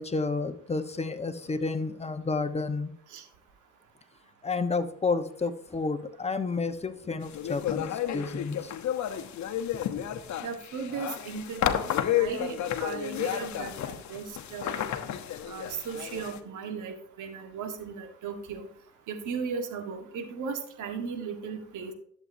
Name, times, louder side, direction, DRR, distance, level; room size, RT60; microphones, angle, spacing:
voice 1, 0.0-2.9 4.4-8.7 10.0-10.1, left 4 dB, 20° left, 7 dB, 1.1 m, -31 dB
sound 1, 7.3-16.4, left 10 dB, 70° left, 1.0 m, -31 dB
voice 2, 10.4-14.2 14.5-14.9 15.4-18.7 19.1-21.9, right 5 dB, 80° right, 6 dB, 1.7 m, -36 dB
11.5 x 7.7 x 2.7 m, 0.63 s
cardioid pair, 90°, 30 cm